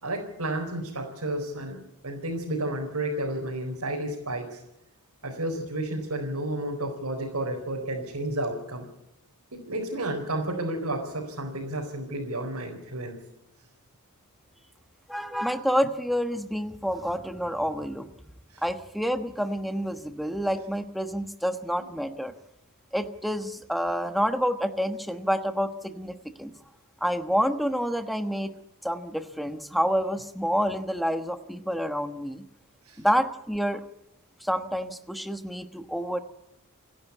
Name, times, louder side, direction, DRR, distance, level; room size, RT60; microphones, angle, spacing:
voice 1, 0.0-4.6 5.2-8.8 9.5-13.2 18.5-18.6 21.8-21.9 32.9-33.0, right 1 dB, 85° right, -1 dB, 4.5 m, -31 dB
voice 2, 15.1-18.1 18.6-22.3 22.9-26.5 27.0-28.6 28.8-32.4 33.0-33.8 34.4-36.2, equal, ahead, 8 dB, 1.2 m, -28 dB
29.5 x 11.5 x 8.3 m, 0.88 s
head